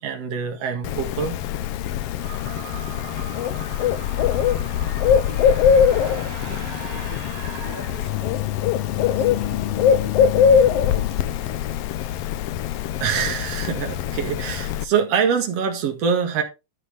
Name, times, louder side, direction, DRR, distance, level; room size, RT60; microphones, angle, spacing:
voice 1, 0.0-1.4 4.8-5.0 13.0-16.4, right 7 dB, 55° right, 2.7 m, -24 dB
Bird, 0.8-14.8, left 8 dB, 75° left, 1.5 m, -22 dB
sound 1, 2.2-8.6, right 7 dB, 75° right, 3.7 m, -41 dB
voice 2, 5.1-5.5 6.0-7.0 7.6-10.3 10.6-11.5, right 2 dB, 10° right, 2.0 m, -43 dB
11.5 x 5.6 x 4.0 m
omnidirectional pair, 3.5 m